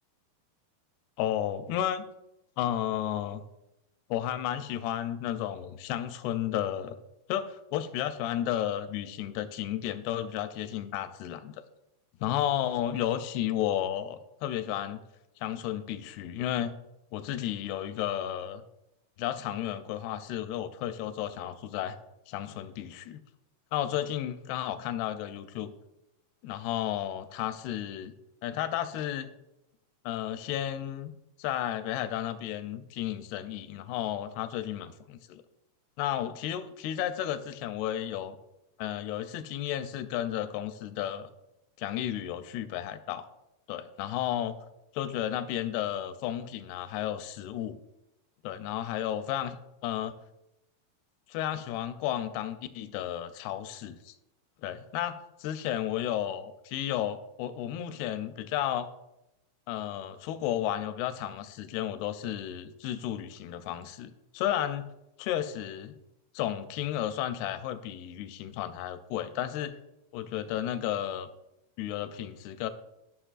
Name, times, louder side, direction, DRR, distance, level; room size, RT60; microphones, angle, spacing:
voice 1, 1.2-2.0 2.6-3.4 4.1-7.0 7.3-11.5 12.2-15.0 15.4-16.7 17.1-18.6 19.2-22.0 22.3-23.2 23.7-25.7 26.4-28.1 28.4-29.3 30.1-31.1 31.4-35.4 36.0-38.4 38.8-41.3 41.8-43.3 43.7-44.6 44.9-47.8 48.4-50.1 51.3-54.1 54.6-58.9 59.7-64.8 65.2-65.9 66.4-69.8 70.1-71.3 71.8-72.7, left 11 dB, 85° left, 11 dB, 2.5 m, -33 dB
12.5 x 5.9 x 2.4 m, 0.89 s
omnidirectional pair, 4.6 m